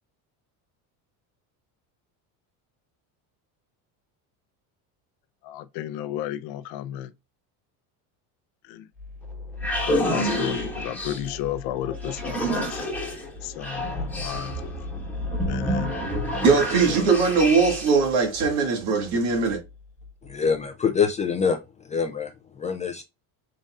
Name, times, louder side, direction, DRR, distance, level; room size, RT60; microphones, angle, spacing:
voice 1, 5.4-7.1 8.6-8.9 9.8-12.8 13.4-14.7 15.2-16.0, left 12 dB, 65° left, 0.7 m, -33 dB
sound 1, 9.0-18.1, equal, 5° left, 1.4 m, -29 dB
voice 2, 16.4-19.6, right 4 dB, 75° right, 2.2 m, -20 dB
voice 3, 20.2-21.6 21.9-22.3 22.6-23.0, left 6 dB, 20° left, 0.3 m, -24 dB
5.3 x 3.8 x 2.4 m
cardioid pair, 150°, 41 cm